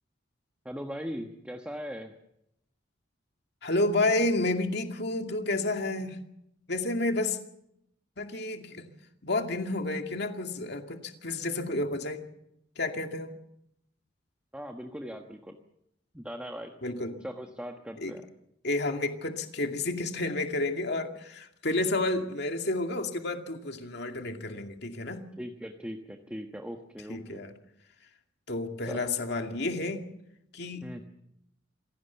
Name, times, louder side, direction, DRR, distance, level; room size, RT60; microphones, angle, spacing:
voice 1, 0.6-2.1 14.5-15.6 16.1-16.7 17.2-18.2 25.4-27.4 28.8-29.1 30.8-31.0, equal, 5° right, 3 dB, 1.3 m, -39 dB
voice 2, 3.6-6.2 6.7-7.4 8.2-8.9 9.2-12.2 12.8-13.3 16.8-17.2 18.0-18.2 18.6-25.2 27.1-27.5 28.5-30.0 30.5-30.9, left 2 dB, 60° left, 4 dB, 2.4 m, -30 dB
26.5 x 17.5 x 7.1 m, 0.78 s
head